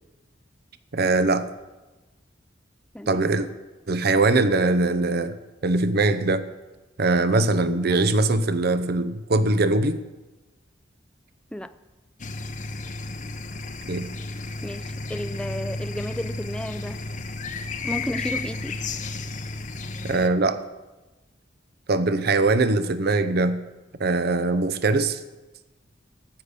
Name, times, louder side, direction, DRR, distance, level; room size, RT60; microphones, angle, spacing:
voice 1, 0.9-1.5 3.1-3.5 3.9-5.4 5.6-6.5 7.0-10.0 13.9-14.1 20.0-20.6 21.9-23.6 24.0-25.2, right 2 dB, 55° right, 12 dB, 0.7 m, -21 dB
sound 1, 12.2-20.3, left 3 dB, 40° left, 0.7 m, -33 dB
voice 2, 14.6-17.0 17.8-18.8, equal, 5° left, 12 dB, 0.4 m, -33 dB
13.5 x 6.7 x 8.3 m, 1.1 s
head